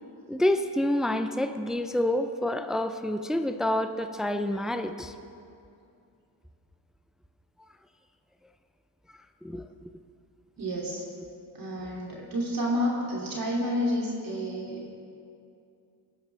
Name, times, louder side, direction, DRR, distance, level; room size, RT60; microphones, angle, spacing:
voice 1, 0.3-5.1 9.4-9.9, left 1 dB, ahead, 8 dB, 0.6 m, -28 dB
voice 2, 10.6-11.0 11.5-15.0, equal, 50° right, -3 dB, 2.9 m, -30 dB
20.5 x 11.5 x 3.4 m, 2.5 s
cardioid pair, 80°, 45 cm